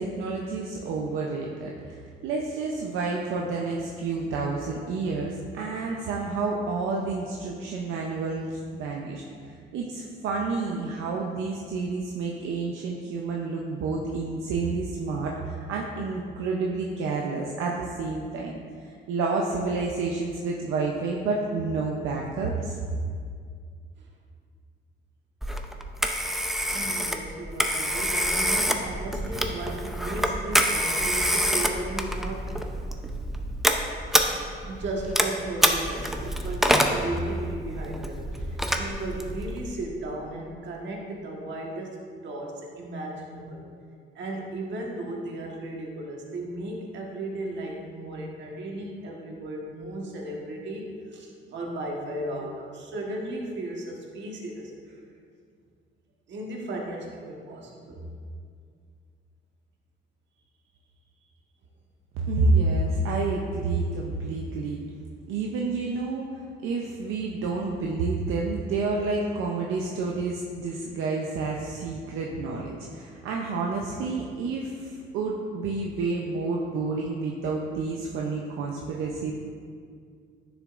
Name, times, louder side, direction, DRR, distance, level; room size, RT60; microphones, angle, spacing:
voice 1, 0.0-22.8 62.2-64.8 65.3-66.3 66.6-79.3, right 3 dB, 90° right, -1 dB, 0.7 m, -29 dB
Telephone, 25.4-39.7, equal, ahead, 0.6 m, -27 dB
voice 2, 26.7-32.6 33.2-33.3 34.1-43.6 44.1-55.0 56.3-58.1, right 1 dB, 65° right, -1 dB, 1.5 m, -35 dB
9.9 x 7.0 x 2.5 m, 2.2 s
cardioid pair, 90°, 20 cm